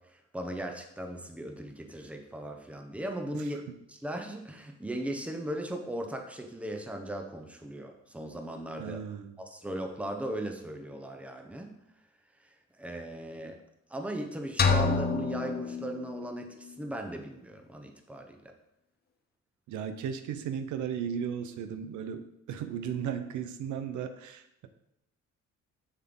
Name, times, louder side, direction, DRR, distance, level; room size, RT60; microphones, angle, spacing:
voice 1, 0.0-3.6 3.9-9.0 9.4-11.7 12.4-13.6 13.9-18.5, right 1 dB, 5° right, 4 dB, 0.9 m, -38 dB
voice 2, 8.8-9.4 19.7-24.7, right 8 dB, 85° right, 8 dB, 0.8 m, -35 dB
sound 1, 14.6-16.5, left 4 dB, 35° left, 0.7 m, -28 dB
7.4 x 6.5 x 3.8 m, 0.81 s
cardioid pair, 130°, 29 cm